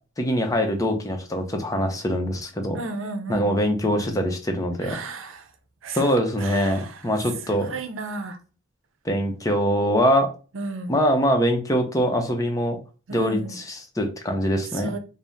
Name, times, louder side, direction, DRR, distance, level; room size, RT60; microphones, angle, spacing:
voice 1, 0.2-2.8 3.3-5.0 5.9-7.7 9.0-10.3 10.9-12.8 13.1-14.9, equal, 15° left, 0.6 m, -23 dB
voice 2, 2.7-3.5 4.8-5.5 5.8-8.4 10.5-11.0 13.1-13.6 14.7-15.0, right 3 dB, 75° right, 0.6 m, -34 dB
3.5 x 2.0 x 4.0 m
head